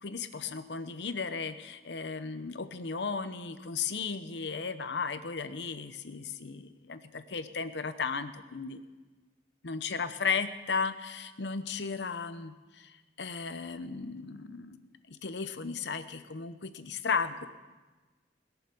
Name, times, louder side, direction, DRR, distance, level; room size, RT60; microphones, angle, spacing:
voice 1, 0.0-8.8 9.6-14.8 15.1-17.5, left 5 dB, 75° left, 11 dB, 0.8 m, -35 dB
21.0 x 7.2 x 7.0 m, 1.2 s
head